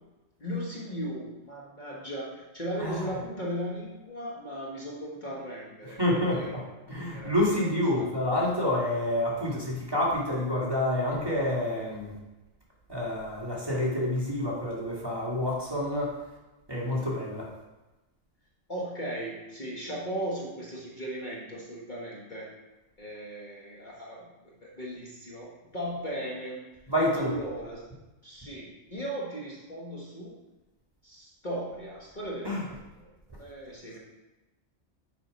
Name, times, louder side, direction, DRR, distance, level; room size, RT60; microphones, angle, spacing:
voice 1, 0.4-6.0 6.3-8.1 18.7-22.5 23.0-26.6 27.1-27.8 28.2-30.3 31.0-33.1 33.4-34.0, right 1 dB, 40° left, -4 dB, 1.3 m, -37 dB
voice 2, 2.8-3.1 6.0-6.6 6.9-12.1 12.9-16.1 16.7-17.5 26.9-27.3 32.4-32.6, left 1 dB, 20° right, -5 dB, 1.8 m, -28 dB
6.9 x 4.9 x 5.1 m, 1.1 s
omnidirectional pair, 1.4 m